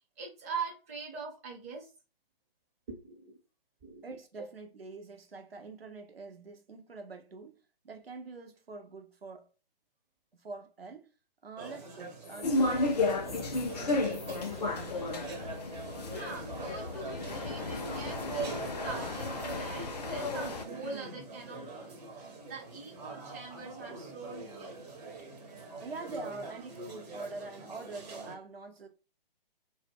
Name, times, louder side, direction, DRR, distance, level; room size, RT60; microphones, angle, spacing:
voice 1, 0.2-1.9 2.9-3.4 3.8-4.1 16.1-24.8 26.1-26.2, right 4 dB, 15° right, 0.5 m, -43 dB
voice 2, 4.0-7.6 7.8-9.5 10.3-11.1 11.4-15.3 25.8-28.9, right 3 dB, 85° right, 0.7 m, -45 dB
sound 1, 11.6-28.4, right 3 dB, 45° right, 0.9 m, -43 dB
sound 2, 12.2-16.0, left 3 dB, 80° left, 0.8 m, -53 dB
sound 3, 12.4-20.6, left 3 dB, 45° left, 0.4 m, -33 dB
2.1 x 2.0 x 3.4 m
figure-of-eight pair, 135°, 29 cm